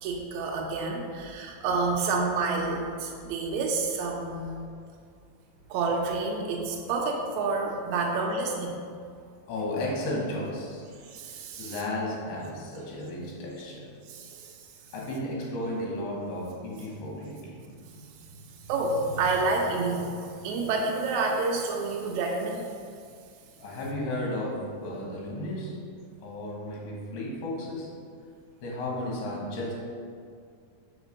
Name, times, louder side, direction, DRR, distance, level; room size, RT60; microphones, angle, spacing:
voice 1, 0.0-4.6 5.7-8.8 11.0-11.8 14.1-14.6 17.9-18.2 18.6-22.6, right 3 dB, 90° right, 0 dB, 1.6 m, -29 dB
voice 2, 9.5-10.8 11.6-13.9 14.9-17.6 23.6-25.8 26.2-27.9 28.6-29.7, left 1 dB, 70° left, -3 dB, 2.8 m, -33 dB
5.1 x 4.3 x 5.0 m, 2.2 s
omnidirectional pair, 4.1 m